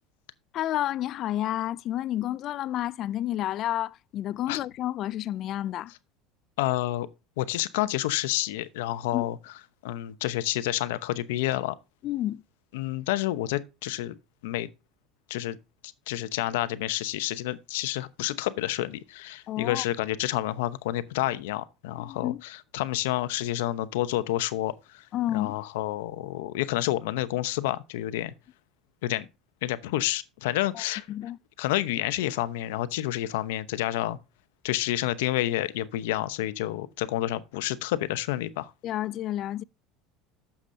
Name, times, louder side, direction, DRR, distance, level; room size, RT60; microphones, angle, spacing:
voice 1, 0.5-5.9 9.1-9.3 12.0-12.4 19.5-19.8 22.0-22.4 25.1-25.6 30.7-30.8 31.1-31.4 38.8-39.6, left 13 dB, 45° left, 0.3 m, -30 dB
voice 2, 6.6-7.1 7.4-9.4 9.8-11.8 12.7-14.2 14.4-14.7 15.3-15.6 16.1-25.0 25.3-28.3 29.0-29.3 29.6-31.1 31.6-34.2 34.6-38.7, left 15 dB, 85° left, 0.8 m, -29 dB
11.5 x 7.2 x 2.7 m
supercardioid pair, 135°, 0 cm